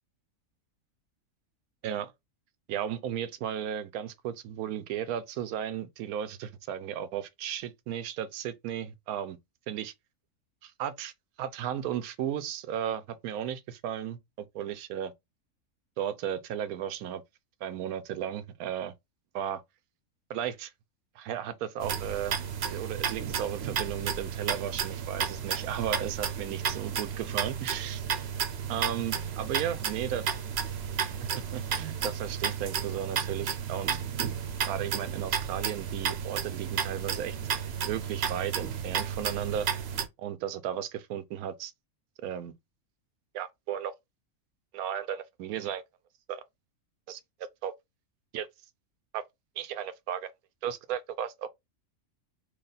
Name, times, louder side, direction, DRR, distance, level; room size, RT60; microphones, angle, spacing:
voice 1, 2.7-9.4 9.7-9.9 10.6-11.1 11.4-15.1 16.0-17.2 17.6-18.9 19.3-19.6 20.3-20.7 21.2-22.4 22.7-28.1 28.7-30.3 31.2-34.0 34.7-37.4 37.9-39.7 40.2-41.7 42.2-42.5 43.3-43.9 44.7-45.8 46.3-46.4 47.1-47.2 47.6-47.7 48.3-48.5 49.1-49.2 49.6-50.3 50.6-51.5, right 9 dB, 90° right, 1.1 m, -35 dB
sound 1, 21.8-40.1, right 7 dB, 55° right, 0.8 m, -32 dB
3.3 x 2.3 x 3.8 m
omnidirectional pair, 1.5 m